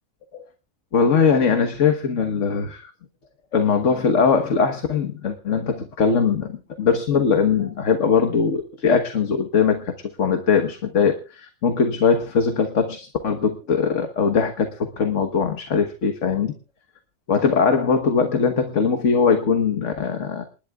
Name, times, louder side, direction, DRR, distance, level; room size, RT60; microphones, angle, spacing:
voice 1, 0.9-2.9 3.5-6.5 6.8-9.9 10.2-16.5 17.3-20.4, left 5 dB, 65° left, 5 dB, 1.6 m, -21 dB
28.0 x 11.5 x 2.4 m, 0.32 s
omnidirectional pair, 1.4 m